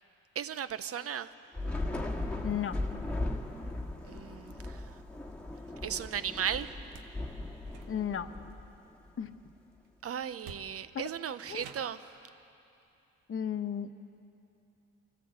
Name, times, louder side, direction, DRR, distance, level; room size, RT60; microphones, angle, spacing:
voice 1, 0.4-1.3 4.1-4.6 5.8-6.7 10.0-12.0, right 8 dB, 50° right, 13 dB, 0.9 m, -35 dB
Thunder / Rain, 1.5-9.1, left 2 dB, 5° left, 1.7 m, -38 dB
voice 2, 2.4-2.8 7.9-8.3 9.2-9.4 10.9-11.1 11.5-11.6 13.3-13.9, left 9 dB, 45° left, 8 dB, 1.1 m, -34 dB
sound 1, 6.8-7.2 7.6-8.3 9.8-9.9 10.4-11.0 11.6-12.1, right 7 dB, 85° right, 1.1 m, -50 dB
25.0 x 14.5 x 8.1 m, 2.8 s
cardioid pair, 90°, 30 cm